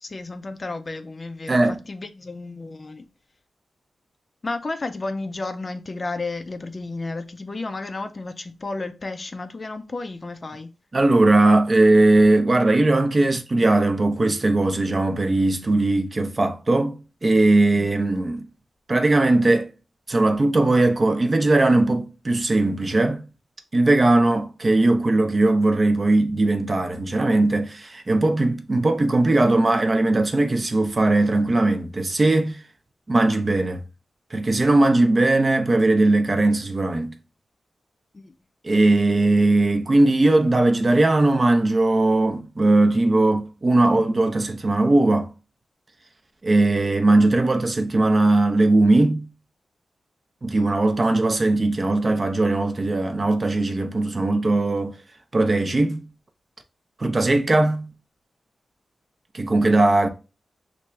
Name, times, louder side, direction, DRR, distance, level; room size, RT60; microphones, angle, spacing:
voice 1, 0.0-3.0 4.4-10.7 38.1-38.3, left 3 dB, 35° left, 0.4 m, -32 dB
voice 2, 1.5-1.8 10.9-18.5 18.9-19.7 20.1-23.2 23.7-32.6 33.1-33.8 34.3-37.2 38.6-45.3 46.4-49.2 50.4-55.0 55.3-56.0 57.0-57.9 59.3-60.1, right 2 dB, 30° right, 0.5 m, -19 dB
3.3 x 2.5 x 3.1 m
wide cardioid pair, 125°, 0 cm